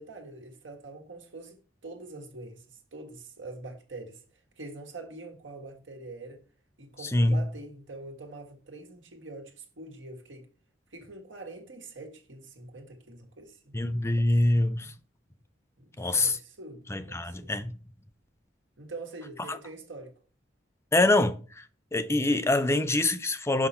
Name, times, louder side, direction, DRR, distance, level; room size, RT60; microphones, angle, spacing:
voice 1, 0.0-4.2 4.6-6.4 6.8-10.5 10.9-13.7 15.8-17.5 18.8-20.1, right 2 dB, 90° right, 1.5 m, -44 dB
voice 2, 7.0-7.4 13.7-14.9 16.0-16.4 16.9-17.8 19.5-19.6 20.9-21.6 21.9-23.7, left 2 dB, 15° left, 0.5 m, -25 dB
5.8 x 5.5 x 4.3 m
head